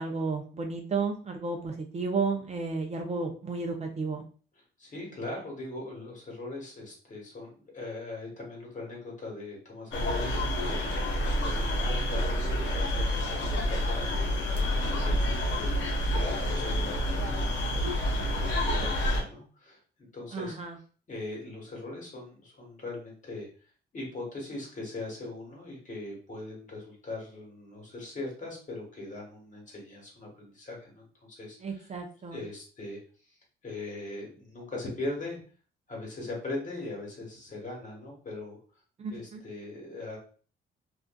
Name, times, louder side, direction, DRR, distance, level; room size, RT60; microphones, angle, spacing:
voice 1, 0.0-4.2 20.3-20.8 31.6-32.4 39.0-39.4, right 4 dB, 35° right, 2 dB, 0.5 m, -32 dB
voice 2, 4.8-10.8 11.3-14.6 14.9-19.8 20.1-20.6 21.1-23.5 23.9-31.9 32.3-33.0 33.6-35.4 35.9-38.6 39.1-40.2, left 2 dB, 40° left, -1 dB, 1.2 m, -40 dB
sound 1, 9.9-19.2, equal, 75° left, 0.7 m, -28 dB
2.5 x 2.3 x 2.2 m, 0.40 s
cardioid pair, 90°, 20 cm